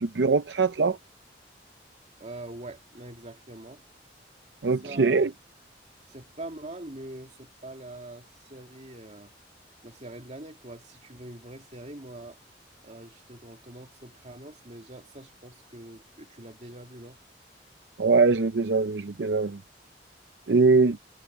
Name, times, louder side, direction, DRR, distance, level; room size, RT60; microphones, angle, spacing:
voice 1, 0.0-1.0 4.6-5.3 18.0-19.6 20.5-21.0, right 4 dB, 70° right, 0.6 m, -22 dB
voice 2, 2.2-3.8 4.8-5.3 6.0-9.3 9.8-12.4 12.8-17.2, right 1 dB, 40° right, 2.6 m, -43 dB
head